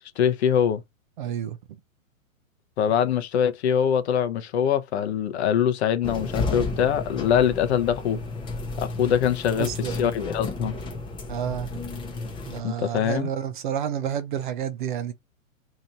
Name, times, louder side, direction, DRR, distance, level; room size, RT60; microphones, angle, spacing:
voice 1, 0.2-0.8 2.8-8.3 8.8-10.7 12.6-13.3, left 9 dB, 50° left, 0.7 m, -23 dB
voice 2, 1.2-1.6 9.5-10.0 11.3-11.8 12.5-15.1, right 9 dB, 40° right, 0.4 m, -30 dB
sound 1, 6.0-12.6, left 3 dB, 10° left, 0.7 m, -32 dB
2.9 x 2.5 x 4.3 m
hypercardioid pair, 135°, 42 cm